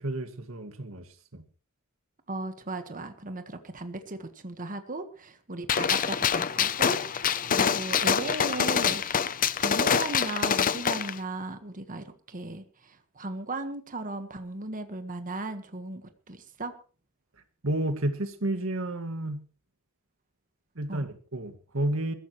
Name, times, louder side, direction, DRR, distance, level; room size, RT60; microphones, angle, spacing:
voice 1, 0.0-1.4 17.6-19.4 20.8-22.1, right 1 dB, 70° right, 8 dB, 2.1 m, -31 dB
voice 2, 2.3-9.3 9.6-16.7 20.9-21.1, right 2 dB, 40° right, 8 dB, 1.6 m, -37 dB
Gunshot gunfire, 5.7-11.1, left 7 dB, 40° left, 0.7 m, -26 dB
21.5 x 15.0 x 3.2 m, 0.38 s
head